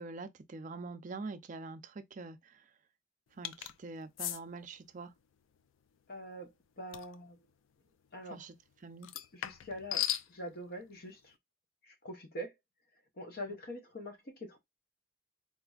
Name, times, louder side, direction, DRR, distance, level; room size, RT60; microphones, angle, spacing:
voice 1, 0.0-2.4 3.4-5.1 8.3-8.5 8.8-9.1, right 3 dB, 40° right, 0.4 m, -44 dB
sound 1, 3.4-3.7 4.2-4.4 6.9-7.1 9.0-10.3, left 12 dB, 80° left, 0.3 m, -36 dB
voice 2, 6.1-6.5 6.8-7.4 8.1-8.4 9.3-11.3 11.8-12.5 13.2-14.6, equal, 50° left, 0.8 m, -44 dB
4.1 x 2.5 x 2.3 m
head